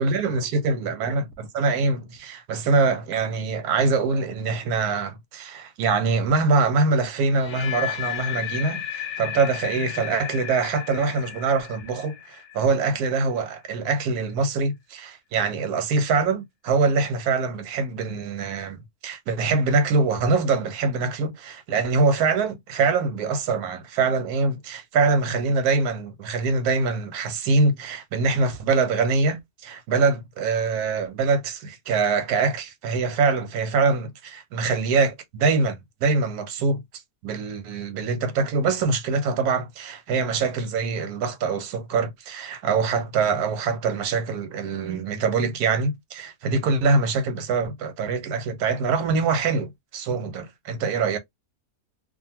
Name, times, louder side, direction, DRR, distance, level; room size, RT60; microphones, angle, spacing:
voice 1, 0.0-18.8 19.0-36.8 37.2-51.2, right 4 dB, 90° right, 1.3 m, -24 dB
sound 1, 7.3-13.3, left 11 dB, 60° left, 0.6 m, -34 dB
2.8 x 2.5 x 2.7 m
omnidirectional pair, 1.6 m